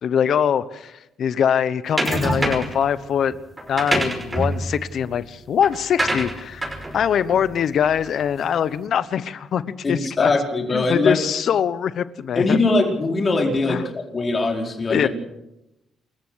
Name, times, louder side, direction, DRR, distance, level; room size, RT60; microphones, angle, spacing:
voice 1, 0.0-3.4 3.7-10.3 10.7-12.6 13.7-13.8 14.9-15.1, left 8 dB, 65° left, 15 dB, 1.0 m, -23 dB
sound 1, 2.0-2.8 3.6-8.3, right 1 dB, 15° right, 5.3 m, -26 dB
voice 2, 9.8-11.2 12.3-13.8 14.1-15.1, left 3 dB, 35° left, 2 dB, 4.7 m, -21 dB
28.0 x 14.5 x 6.5 m, 0.92 s
cardioid pair, 90°, 0 cm